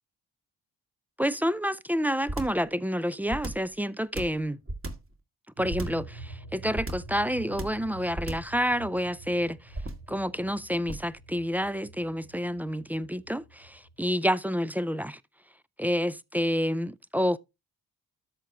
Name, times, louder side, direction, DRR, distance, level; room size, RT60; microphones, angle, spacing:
voice 1, 1.2-4.6 5.6-9.6 10.1-15.2 15.8-17.4, equal, 5° right, 0.3 m, -29 dB
sound 1, 2.3-2.7 3.3-3.7 4.1-5.1 5.7-6.1 6.8-7.2 7.6-7.9 8.2-8.6 9.7-10.1 10.9-11.2, right 1 dB, 30° right, 2.0 m, -35 dB
sound 2, 5.6-14.1, right 2 dB, 60° right, 2.3 m, -46 dB
13.0 x 4.9 x 2.8 m
hypercardioid pair, 40°, 45 cm